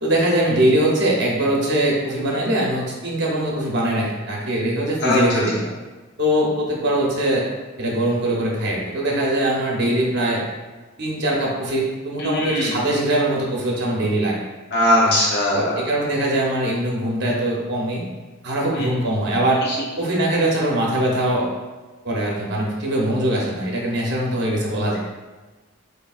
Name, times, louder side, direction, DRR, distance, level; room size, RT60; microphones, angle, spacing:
voice 1, 0.0-5.6 6.2-7.5 7.8-10.4 11.0-14.4 15.0-15.2 15.5-18.0 18.4-19.6 20.0-21.5 22.0-25.0, right 1 dB, 50° right, -2 dB, 0.8 m, -22 dB
voice 2, 12.2-12.6 14.7-15.8, left 1 dB, 50° left, -5 dB, 0.5 m, -19 dB
4.2 x 3.5 x 2.3 m, 1.3 s
head